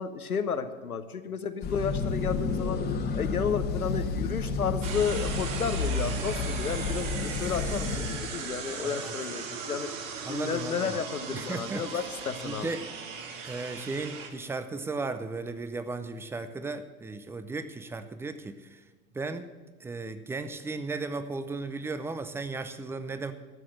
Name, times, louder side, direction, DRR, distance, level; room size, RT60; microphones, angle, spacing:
voice 1, 0.0-2.8 3.1-9.9 10.3-12.7, left 6 dB, 85° left, 9 dB, 1.1 m, -32 dB
sound 1, 1.6-8.2, left 4 dB, 25° left, 1.3 m, -31 dB
sound 2, 4.8-14.3, right 5 dB, 60° right, 2.3 m, -38 dB
voice 2, 8.8-9.1 10.3-11.0 11.3-12.0 12.4-12.9 13.4-18.8 19.1-19.5 19.8-23.3, right 3 dB, 5° right, 11 dB, 0.5 m, -35 dB
12.5 x 7.7 x 7.7 m, 1.2 s
figure-of-eight pair, 95°, 43 cm